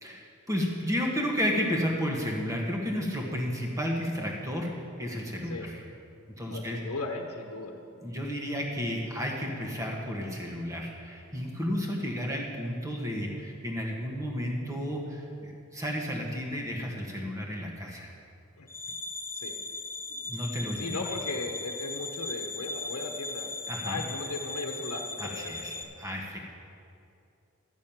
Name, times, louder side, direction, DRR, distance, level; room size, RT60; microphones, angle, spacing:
voice 1, 0.0-5.8 6.4-6.8 8.0-18.1 20.3-21.0 23.7-24.0 25.2-26.4, equal, 15° right, -1 dB, 1.5 m, -32 dB
voice 2, 6.4-7.8 18.6-18.7 19.3-19.5 20.8-23.5 23.8-25.9, left 2 dB, 70° left, 2 dB, 1.1 m, -37 dB
sound 1, 18.7-25.8, left 3 dB, 10° left, 0.9 m, -38 dB
13.0 x 6.3 x 8.9 m, 2.5 s
head